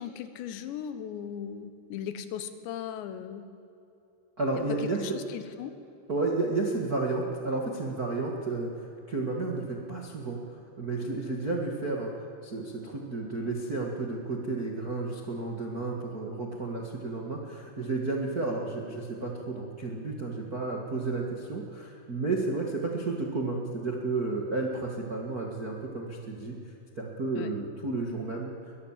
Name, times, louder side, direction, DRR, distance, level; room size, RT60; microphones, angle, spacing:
voice 1, 0.0-3.4 4.5-5.7 27.3-27.5, left 9 dB, 85° left, 11 dB, 3.5 m, -38 dB
voice 2, 4.4-5.0 6.1-28.5, right 3 dB, 50° right, 0 dB, 1.1 m, -32 dB
22.0 x 21.0 x 7.5 m, 2.8 s
omnidirectional pair, 5.0 m